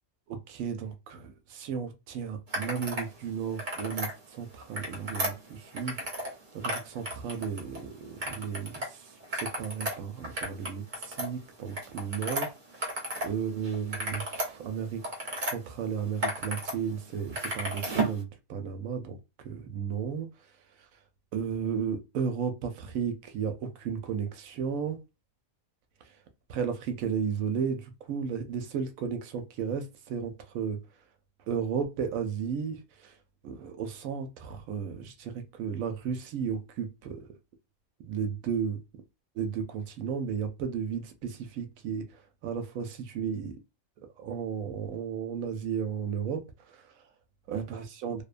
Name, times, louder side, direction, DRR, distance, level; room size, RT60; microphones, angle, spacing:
voice 1, 0.3-6.3 6.5-9.0 9.3-12.5 13.2-15.0 15.4-19.2 19.4-20.3 21.3-25.0 26.5-30.8 31.5-33.1 33.4-37.2 38.0-38.8 39.4-42.0 42.4-43.5 44.2-46.4 46.7-46.8 47.5-48.2, right 7 dB, 75° right, 0.9 m, -34 dB
sound 1, 2.5-3.1 3.4-4.1 4.6-6.3 6.6-7.8 8.2-8.9 9.2-13.3 13.6-15.5 16.0-16.7 17.0-18.2, right 1 dB, 40° right, 0.8 m, -34 dB
2.7 x 2.1 x 2.4 m
omnidirectional pair, 1.5 m